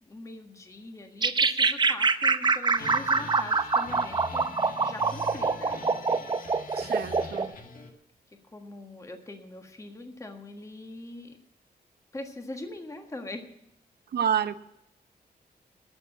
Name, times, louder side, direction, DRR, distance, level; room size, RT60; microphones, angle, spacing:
voice 1, 0.0-4.5 4.8-5.8 8.3-11.4 12.1-13.5, left 2 dB, 20° left, 1.5 m, -42 dB
sound 1, 1.2-7.5, right 4 dB, 25° right, 0.6 m, -25 dB
sound 2, 2.8-7.9, left 3 dB, 60° left, 1.7 m, -42 dB
voice 2, 6.8-7.5 14.1-14.6, right 8 dB, 80° right, 0.8 m, -29 dB
12.5 x 6.9 x 9.0 m
wide cardioid pair, 120°, 17 cm